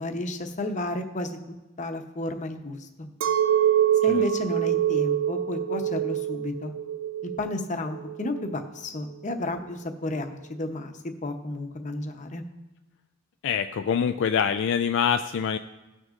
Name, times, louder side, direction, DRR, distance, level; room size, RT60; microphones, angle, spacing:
voice 1, 0.0-1.4 1.8-3.1 4.0-6.7 7.4-12.4, left 2 dB, 35° left, 5 dB, 0.8 m, -32 dB
Chink clink, 3.2-8.7, right 10 dB, 65° right, 0.5 m, -25 dB
voice 2, 13.4-15.6, left 7 dB, 60° left, 8 dB, 0.3 m, -25 dB
18.5 x 6.3 x 2.5 m, 1.1 s
head